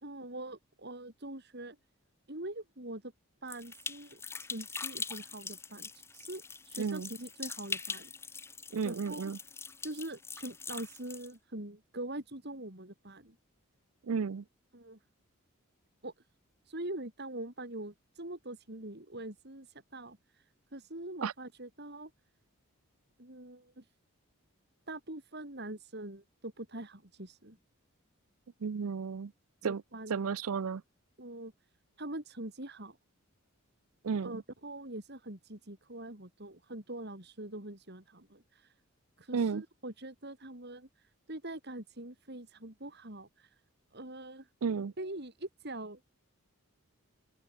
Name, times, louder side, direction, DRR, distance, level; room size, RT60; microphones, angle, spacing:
voice 1, 0.0-1.8 2.3-3.1 3.4-8.1 8.8-9.3 9.8-13.4 14.7-15.0 16.0-16.1 16.7-22.1 23.2-23.9 24.9-27.6 29.6-30.2 31.2-31.5 32.0-33.0 34.2-38.7 39.2-43.6 43.9-44.5 45.0-46.0, right 1 dB, 50° right, 3.6 m, -43 dB
sound 1, 3.5-11.3, left 4 dB, 10° left, 0.5 m, -43 dB
voice 2, 6.8-7.1 8.7-9.4 14.1-14.4 21.2-21.3 28.6-29.3 29.6-29.8 30.1-30.8 34.0-34.3 39.3-39.6 44.6-44.9, right 5 dB, 80° right, 0.5 m, -32 dB
open air
head